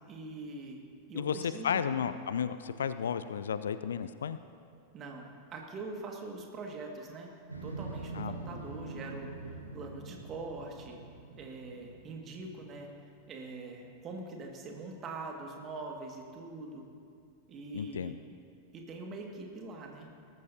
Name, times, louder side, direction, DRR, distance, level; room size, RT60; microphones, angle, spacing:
voice 1, 0.1-0.8 1.1-1.8 4.9-7.3 7.6-11.0 11.4-12.9 13.3-16.9 17.5-18.2 18.7-20.1, right 3 dB, 30° right, 1 dB, 2.0 m, -43 dB
voice 2, 1.1-4.4 8.1-8.3 17.7-18.1, left 7 dB, 65° left, 13 dB, 0.4 m, -33 dB
Motorcycle, 7.5-12.7, right 3 dB, 85° right, 1.6 m, -44 dB
20.0 x 13.5 x 2.8 m, 2.3 s
figure-of-eight pair, 90°, 0 cm